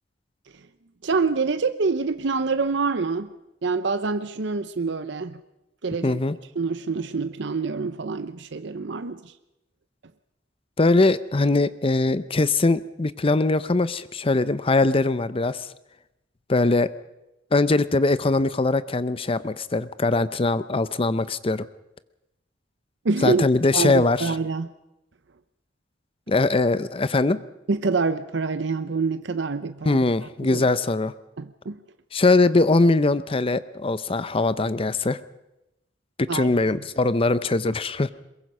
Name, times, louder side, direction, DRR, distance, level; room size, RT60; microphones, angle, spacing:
voice 1, 1.0-3.3 3.6-5.4 5.8-6.2 6.6-9.3 23.0-23.4 23.7-24.7 27.7-30.0 30.5-30.7 31.4-31.8 36.3-36.5, right 4 dB, 65° right, 11 dB, 0.7 m, -26 dB
voice 2, 6.0-6.4 10.8-15.7 16.5-16.9 17.5-21.7 23.2-24.3 26.3-27.4 29.8-31.1 32.1-35.2 36.2-38.1, left 3 dB, 30° left, 15 dB, 0.6 m, -21 dB
22.5 x 21.5 x 5.5 m, 0.91 s
head